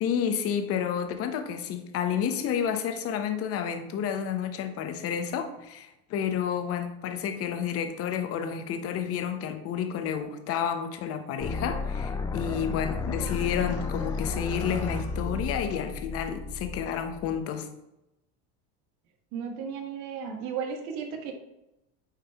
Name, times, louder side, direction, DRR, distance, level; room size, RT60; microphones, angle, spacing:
voice 1, 0.0-17.7, left 8 dB, 45° left, 0.9 m, -30 dB
sound 1, 11.4-17.4, left 4 dB, 10° left, 0.4 m, -33 dB
sound 2, 12.6-15.6, left 3 dB, 70° left, 1.7 m, -50 dB
voice 2, 19.3-21.3, right 6 dB, 70° right, 1.4 m, -34 dB
9.2 x 3.3 x 3.5 m
cardioid pair, 135°, 32 cm